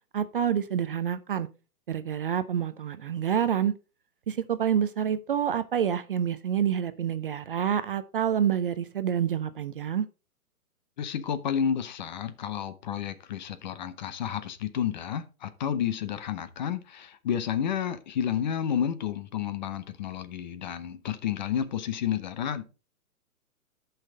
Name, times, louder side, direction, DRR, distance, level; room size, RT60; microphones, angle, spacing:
voice 1, 0.1-1.5 1.9-3.7 4.3-10.1, right 9 dB, 40° right, 0.5 m, -27 dB
voice 2, 11.0-22.6, left 8 dB, 30° left, 0.7 m, -31 dB
10.5 x 5.7 x 3.9 m
hypercardioid pair, 150°, 44 cm